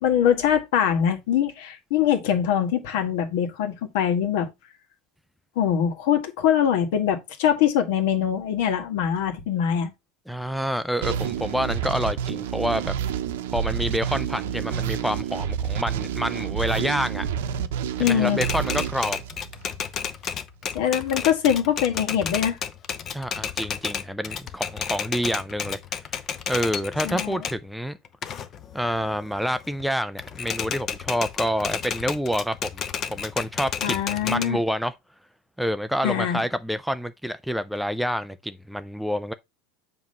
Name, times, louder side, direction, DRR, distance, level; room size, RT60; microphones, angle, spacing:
voice 1, 0.0-4.5 5.5-9.9 18.0-18.4 20.7-22.6 27.0-27.4 33.8-34.6 36.0-36.4, left 9 dB, 70° left, 1.6 m, -23 dB
voice 2, 10.3-12.9 13.5-17.3 18.0-19.2 23.1-26.0 26.5-28.0 28.7-32.8 33.1-34.9 35.6-39.3, equal, ahead, 0.4 m, -28 dB
sound 1, 11.0-19.9, right 9 dB, 85° right, 0.7 m, -29 dB
Typewriter, 18.0-27.6 28.0-29.8 30.2-34.4, left 8 dB, 30° left, 0.7 m, -32 dB
7.3 x 2.9 x 5.4 m
supercardioid pair, 145°, 0 cm